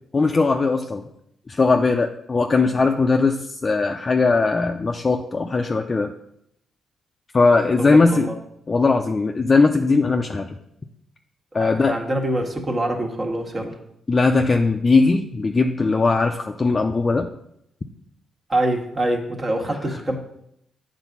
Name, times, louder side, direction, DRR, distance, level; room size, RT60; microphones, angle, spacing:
voice 1, 0.1-1.0 1.5-6.1 7.3-8.3 8.7-10.6 11.5-12.0 14.1-17.3, left 3 dB, 30° left, 3 dB, 0.5 m, -19 dB
voice 2, 7.8-8.3 11.6-13.8 18.5-20.2, right 1 dB, 35° right, 2 dB, 1.6 m, -25 dB
8.0 x 4.0 x 6.0 m, 0.76 s
cardioid pair, 80°, 0 cm